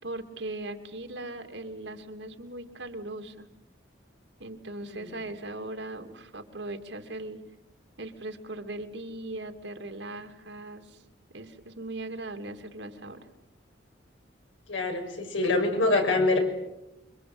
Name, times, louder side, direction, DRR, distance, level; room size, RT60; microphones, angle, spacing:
voice 1, 0.0-3.5 4.4-7.4 8.0-11.0 11.3-13.2, right 2 dB, 70° right, 6 dB, 2.8 m, -39 dB
voice 2, 14.7-16.4, left 2 dB, 90° left, 3 dB, 6.6 m, -25 dB
27.5 x 24.0 x 8.0 m, 0.87 s
head